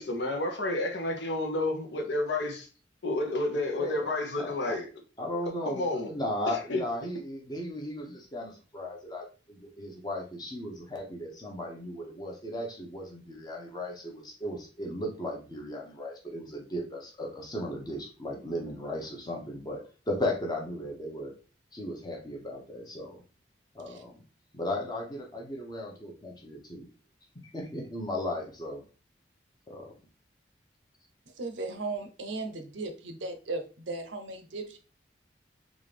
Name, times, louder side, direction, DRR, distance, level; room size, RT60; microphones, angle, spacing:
voice 1, 0.0-2.7 3.0-4.9 5.6-6.1 6.7-6.8, left 2 dB, 70° left, 0.9 m, -30 dB
voice 2, 3.8-4.1 4.4-4.8 5.2-21.3 21.7-23.2 23.7-24.2 24.5-26.9 27.5-28.8 29.7-29.9, left 1 dB, 20° left, 0.8 m, -36 dB
voice 3, 31.4-34.8, right 3 dB, 85° right, 0.7 m, -36 dB
3.7 x 2.5 x 3.3 m
head